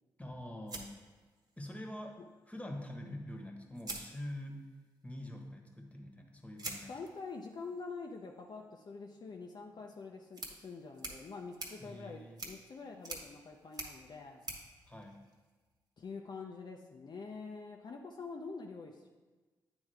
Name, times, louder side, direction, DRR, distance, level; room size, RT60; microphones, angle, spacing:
voice 1, 0.2-1.0 1.6-2.2 2.5-4.7 5.0-6.9 11.8-12.4 14.9-15.2, left 1 dB, 15° left, 2 dB, 1.2 m, -45 dB
sound 1, 0.7-1.8 3.1-3.2 3.7-4.8 6.6-15.8, right 2 dB, 45° right, 1.1 m, -48 dB
voice 2, 6.9-14.4 16.0-19.1, left 4 dB, 50° left, 1 dB, 0.5 m, -46 dB
8.8 x 3.5 x 3.3 m, 1.3 s
supercardioid pair, 45°, 9 cm